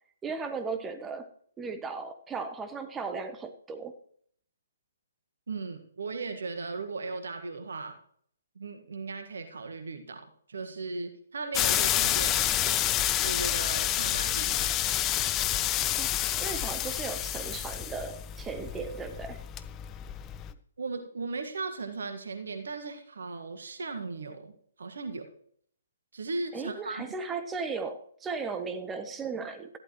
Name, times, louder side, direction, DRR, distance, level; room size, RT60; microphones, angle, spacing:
voice 1, 0.2-1.3 1.6-3.9 15.9-16.1 16.4-19.4 26.5-29.8, right 4 dB, 10° right, 9 dB, 1.1 m, -36 dB
voice 2, 5.5-8.0 8.5-12.9 13.2-14.9 20.8-24.5 24.8-25.3 26.1-27.1, right 3 dB, 60° right, 6 dB, 1.7 m, -37 dB
sound 1, 11.5-20.5, left 12 dB, 20° left, 0.6 m, -29 dB
14.0 x 11.5 x 3.1 m, 0.63 s
figure-of-eight pair, 130°, 0 cm